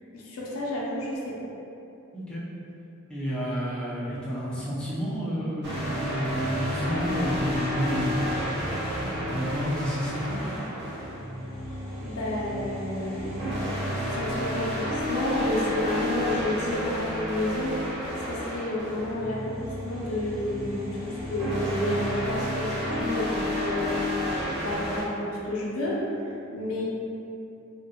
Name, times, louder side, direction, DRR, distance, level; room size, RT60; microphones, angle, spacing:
voice 1, 0.1-1.5 12.0-13.6 13.9-18.0 18.3-26.8, left 1 dB, 80° left, -5 dB, 0.5 m, -31 dB
voice 2, 3.1-8.3 9.0-10.6, equal, 5° left, -9 dB, 0.4 m, -30 dB
sound 1, 5.6-25.0, equal, 55° right, 0.7 m, -31 dB
2.4 x 2.1 x 2.7 m, 2.7 s
head